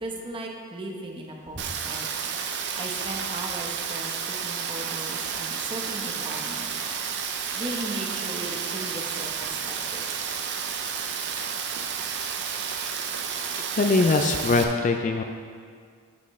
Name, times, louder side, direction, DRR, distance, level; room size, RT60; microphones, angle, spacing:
voice 1, 0.0-2.1 2.5-6.7 7.5-10.0, right 1 dB, 20° right, 0 dB, 0.9 m, -37 dB
Rain, 1.6-14.6, right 7 dB, 50° right, 0.6 m, -31 dB
voice 2, 13.8-15.2, left 3 dB, 35° left, 5 dB, 0.4 m, -22 dB
12.5 x 5.8 x 3.2 m, 2.1 s
head